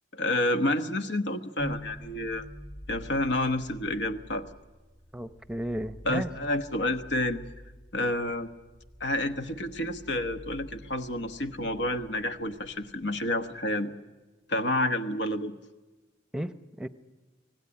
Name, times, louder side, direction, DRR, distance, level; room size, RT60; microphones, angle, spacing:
voice 1, 0.1-2.5 2.9-4.4 6.0-7.4 7.9-8.5 9.0-13.9 14.5-15.5, left 1 dB, 70° left, 9 dB, 1.3 m, -29 dB
sound 1, 1.6-13.6, equal, 35° left, 5.5 m, -47 dB
voice 2, 5.1-6.3 16.3-16.9, right 1 dB, 5° right, 12 dB, 0.8 m, -34 dB
25.5 x 18.0 x 9.7 m, 1.3 s
head